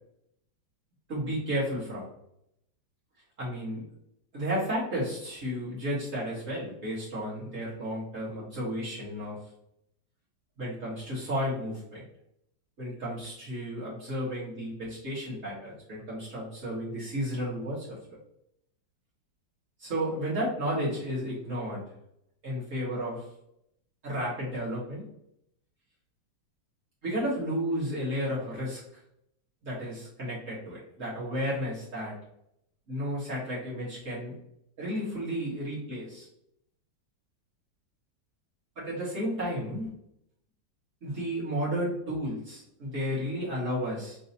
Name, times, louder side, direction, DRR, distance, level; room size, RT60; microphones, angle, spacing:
voice 1, 1.1-2.1 3.4-3.8 4.3-9.4 10.6-12.0 12.8-18.0 19.8-21.8 22.4-23.3 24.0-25.0 27.0-29.0 29.6-32.1 32.9-34.4 34.8-36.3 38.7-39.9 41.0-44.2, equal, 45° right, -8 dB, 1.7 m, -33 dB
5.4 x 2.8 x 2.7 m, 0.77 s
omnidirectional pair, 2.0 m